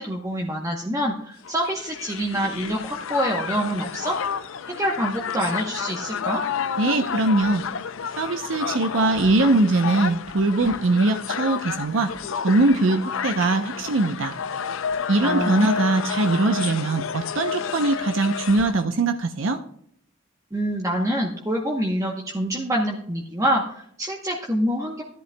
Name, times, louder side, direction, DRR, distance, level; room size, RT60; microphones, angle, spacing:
voice 1, 0.0-4.2 4.7-6.4 15.2-15.7 20.5-25.0, equal, 15° right, -1 dB, 0.9 m, -26 dB
Crowd, 1.4-18.8, left 7 dB, 70° left, 0.5 m, -31 dB
voice 2, 6.8-7.6 8.2-12.1 12.4-14.3 15.1-19.6, right 2 dB, 65° right, 6 dB, 0.6 m, -21 dB
14.5 x 10.5 x 2.2 m, 0.68 s
head